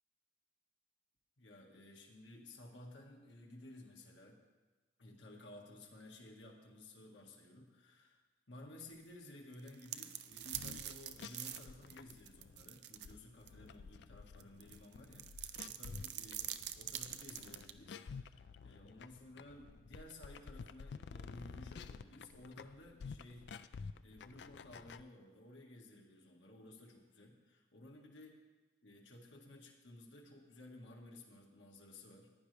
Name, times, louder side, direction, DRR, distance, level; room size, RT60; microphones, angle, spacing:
voice 1, 1.4-4.4 5.0-8.2 8.5-16.5 16.8-28.4 28.8-32.3, left 1 dB, 80° left, 0 dB, 1.8 m, -56 dB
sound 1, 9.5-13.1 13.5-13.6 14.4-17.7, right 12 dB, 65° right, 0.6 m, -45 dB
sound 2, 10.4-25.0, left 5 dB, 65° left, 0.4 m, -51 dB
15.0 x 10.5 x 3.4 m, 1.3 s
head